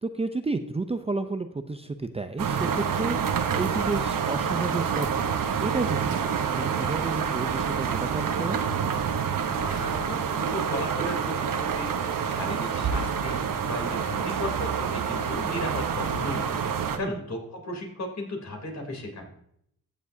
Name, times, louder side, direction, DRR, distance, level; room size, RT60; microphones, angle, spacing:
voice 1, 0.0-5.3 5.6-8.6 17.0-17.2, right 3 dB, 20° right, 8 dB, 0.5 m, -31 dB
sound 1, 2.4-17.0, right 7 dB, 70° right, 1.0 m, -27 dB
voice 2, 9.6-11.9 12.2-16.6 17.0-19.3, left 1 dB, 50° left, 2 dB, 3.2 m, -35 dB
14.5 x 7.2 x 2.7 m, 0.71 s
cardioid pair, 75°, 34 cm